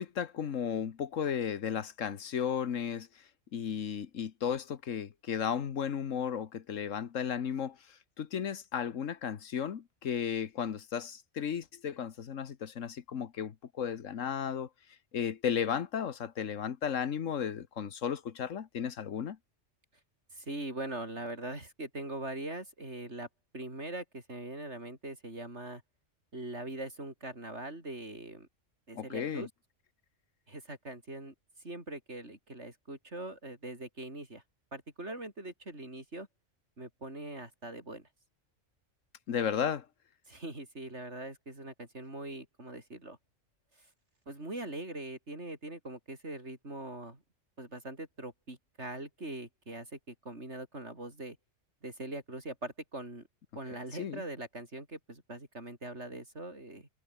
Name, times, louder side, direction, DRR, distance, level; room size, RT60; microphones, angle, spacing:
voice 1, 0.0-14.7 15.1-19.4 28.9-29.5 39.3-39.9 54.0-54.2, left 8 dB, 85° left, 1.5 m, -34 dB
voice 2, 20.3-23.3 23.5-25.8 26.3-28.5 28.9-29.5 30.5-31.3 31.6-34.4 34.7-36.3 36.8-38.1 40.3-43.2 44.3-47.2 47.6-51.4 51.8-53.3 53.6-56.9, right 2 dB, 60° right, 6.6 m, -42 dB
omnidirectional pair, 1.3 m